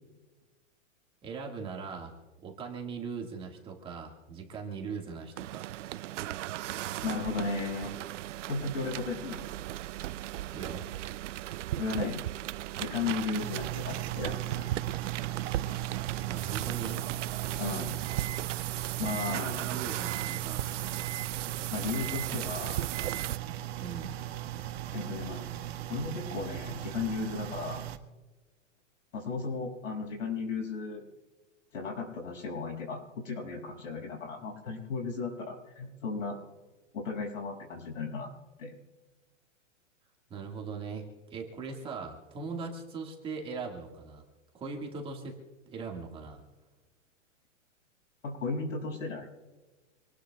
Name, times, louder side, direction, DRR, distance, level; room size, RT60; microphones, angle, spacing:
voice 1, 1.2-2.1 2.4-5.7 10.5-10.9 16.3-17.1 18.9-20.8 23.8-24.2 40.3-44.2 44.5-45.4 45.7-46.4, right 5 dB, 15° right, 0 dB, 1.7 m, -40 dB
sound 1, 5.4-23.4, right 14 dB, 70° right, 0.5 m, -36 dB
voice 2, 7.0-8.0 8.5-9.4 11.8-12.2 12.8-14.7 17.6-18.0 19.0-19.6 21.7-22.9 24.9-25.4 25.9-27.8 29.1-31.0 31.7-36.4 36.9-38.3 38.6-38.7 48.2-49.3, left 4 dB, 80° left, 0 dB, 6.2 m, -35 dB
sound 2, 13.3-28.0, right 14 dB, 55° right, 1.5 m, -37 dB
26.5 x 19.5 x 2.3 m, 1.2 s
hypercardioid pair, 165°, 38 cm